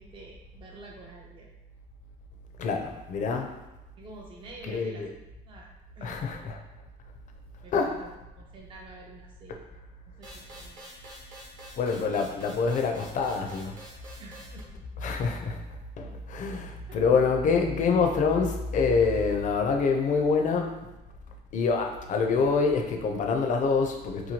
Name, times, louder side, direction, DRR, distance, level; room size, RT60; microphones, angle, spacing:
voice 1, 0.0-1.5 4.0-5.7 6.0-6.2 7.6-9.6 10.2-10.8 14.2-14.9 16.9-17.0, right 2 dB, 30° right, -1 dB, 0.5 m, -48 dB
voice 2, 2.6-3.5 4.6-5.1 6.0-6.6 7.7-8.0 11.8-13.8 15.0-15.6 16.0-20.9 21.5-24.3, left 5 dB, 50° left, 3 dB, 0.5 m, -26 dB
sound 1, 10.2-14.6, right 1 dB, 50° right, 1.0 m, -47 dB
2.9 x 2.3 x 2.8 m, 0.99 s
cardioid pair, 110°, 17 cm